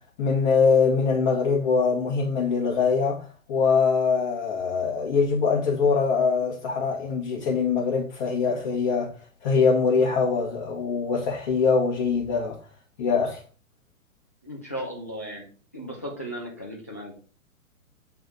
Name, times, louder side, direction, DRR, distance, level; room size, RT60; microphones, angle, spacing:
voice 1, 0.2-9.1 9.4-12.6 13.0-13.4, left 5 dB, 35° left, 1.7 m, -23 dB
voice 2, 14.4-15.4 15.7-17.1, equal, 15° left, 0.3 m, -35 dB
7.7 x 3.5 x 3.9 m
figure-of-eight pair, 115°, 42 cm